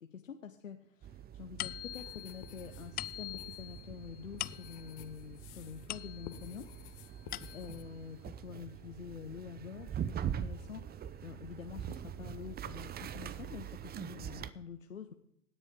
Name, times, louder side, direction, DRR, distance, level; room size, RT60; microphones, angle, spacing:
voice 1, 0.0-6.7 7.1-15.1, left 7 dB, 85° left, 6 dB, 0.9 m, -47 dB
sound 1, 1.0-14.5, right 9 dB, 25° right, 0.8 m, -44 dB
sound 2, 1.6-6.6 7.0-7.9, left 15 dB, 25° left, 0.4 m, -44 dB
sound 3, 1.9-5.9 6.2-7.8, left 12 dB, 50° left, 1.2 m, -53 dB
17.0 x 9.9 x 5.2 m, 0.75 s
figure-of-eight pair, 80°, 38 cm